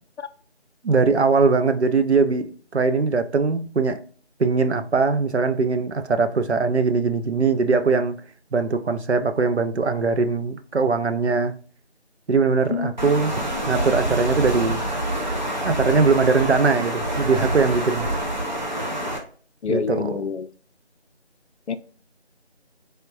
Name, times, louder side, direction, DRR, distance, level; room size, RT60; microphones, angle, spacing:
voice 1, 0.8-4.0 4.4-8.1 8.5-11.5 12.3-13.3 13.7-14.8 15.6-18.1 19.7-20.2, right 4 dB, 70° right, 0.6 m, -21 dB
Water, 13.0-19.2, right 1 dB, 40° right, 0.9 m, -26 dB
voice 2, 19.6-20.5 21.7-21.8, left 6 dB, 80° left, 0.5 m, -26 dB
3.9 x 3.5 x 2.6 m
figure-of-eight pair, 175°, 34 cm